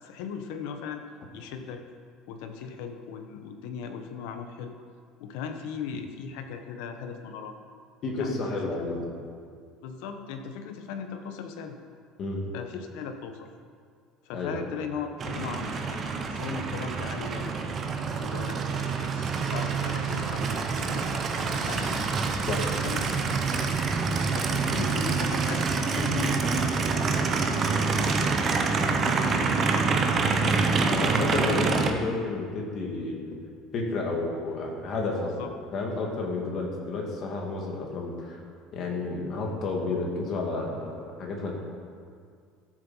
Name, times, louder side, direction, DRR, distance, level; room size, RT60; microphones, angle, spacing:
voice 1, 0.0-1.0 1.3-1.8 2.3-4.7 5.2-7.5 8.2-8.7 9.8-11.8 12.5-13.5 14.2-19.1 19.5-22.0 22.6-23.4 24.3-29.9 35.4-35.5, left 6 dB, 70° left, 6 dB, 1.1 m, -38 dB
voice 2, 8.0-9.0 12.2-12.4 14.3-14.6 22.5-22.6 30.4-33.2 33.7-35.4 35.7-38.4 38.7-41.5, left 3 dB, 35° left, 0 dB, 2.0 m, -31 dB
Aircraft, 15.2-31.9, right 4 dB, 25° right, 0.8 m, -26 dB
sound 1, 19.1-25.9, right 2 dB, 85° right, 3.4 m, -44 dB
13.5 x 7.5 x 5.6 m, 2.1 s
cardioid pair, 175°, 0 cm